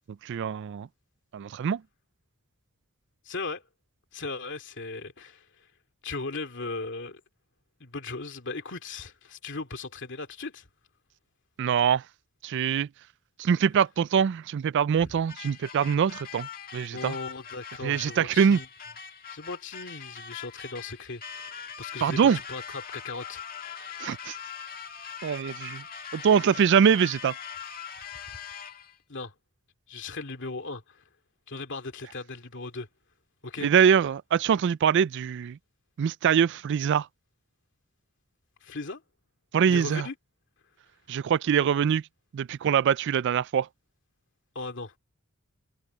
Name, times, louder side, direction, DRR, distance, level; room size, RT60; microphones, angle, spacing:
voice 1, 0.2-0.9 1.3-1.8 11.6-12.0 12.4-12.9 13.4-16.5 16.7-17.1 17.8-18.6 22.0-22.4 24.0-24.3 25.2-25.8 26.1-27.3 33.6-35.6 36.0-37.1 39.5-40.1 41.1-42.0 42.3-43.7, right 7 dB, 60° right, 0.3 m, -23 dB
voice 2, 3.2-3.6 4.1-5.5 6.0-7.2 7.8-10.7 15.0-15.2 16.9-18.7 19.3-24.3 28.3-28.4 29.1-29.3 29.9-31.0 31.5-32.9 33.4-33.7 38.6-39.0 39.7-40.1 44.5-45.0, left 3 dB, 60° left, 2.4 m, -38 dB
sound 1, 15.3-29.0, left 7 dB, 45° left, 1.9 m, -42 dB
head